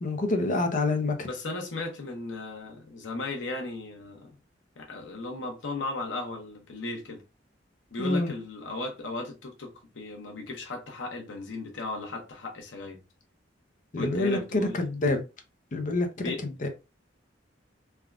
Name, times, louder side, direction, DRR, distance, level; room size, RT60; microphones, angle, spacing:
voice 1, 0.0-1.3 8.0-8.3 13.9-15.2 15.7-16.7, left 2 dB, 45° left, 0.6 m, -27 dB
voice 2, 1.2-4.3 4.8-7.2 7.9-13.0 14.0-14.8 16.2-16.4, left 2 dB, 85° left, 0.8 m, -36 dB
3.4 x 2.3 x 2.4 m
head